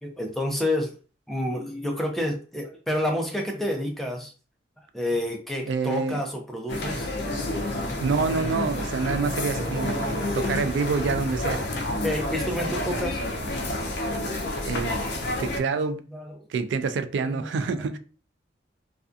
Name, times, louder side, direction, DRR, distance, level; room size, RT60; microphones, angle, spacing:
voice 1, 0.0-0.9 1.3-4.3 4.9-7.1 7.5-7.6 9.3-11.0 11.5-13.5 15.1-15.8 16.1-16.5 17.2-18.0, left 1 dB, ahead, 0.4 m, -31 dB
voice 2, 5.7-6.2 8.0-11.6 14.6-15.0 15.4-16.0 16.5-18.0, right 5 dB, 80° right, 0.3 m, -27 dB
sound 1, 6.7-15.6, left 1 dB, 70° left, 0.5 m, -29 dB
2.5 x 2.3 x 2.4 m
head